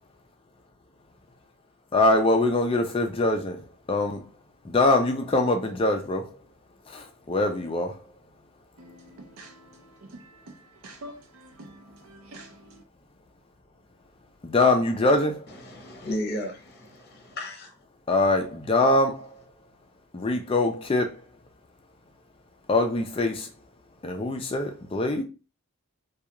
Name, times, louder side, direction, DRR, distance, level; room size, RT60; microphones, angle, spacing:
voice 1, 1.9-3.6 3.9-4.2 4.6-6.4 6.9-8.0 14.4-15.5 18.1-19.4 20.1-21.2 22.7-23.5 24.0-25.2, left 2 dB, 25° left, 0.3 m, -23 dB
voice 2, 8.8-12.8, right 1 dB, 70° right, 0.6 m, -47 dB
voice 3, 15.5-17.7, left 1 dB, 45° left, 0.8 m, -34 dB
2.3 x 2.3 x 2.8 m
head